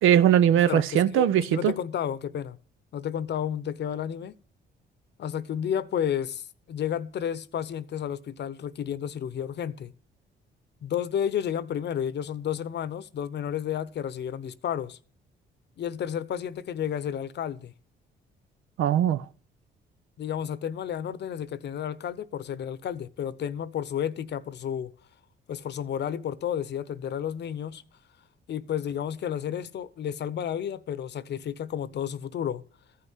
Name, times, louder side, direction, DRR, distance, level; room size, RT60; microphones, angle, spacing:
voice 1, 0.0-1.7 18.8-19.2, right 10 dB, 90° right, 0.7 m, -20 dB
voice 2, 0.7-2.6 2.9-4.3 5.2-9.9 10.8-15.0 15.8-17.7 20.2-24.9 25.5-27.8 28.5-32.6, left 9 dB, 60° left, 0.8 m, -31 dB
14.0 x 5.7 x 8.1 m
cardioid pair, 90°, 20 cm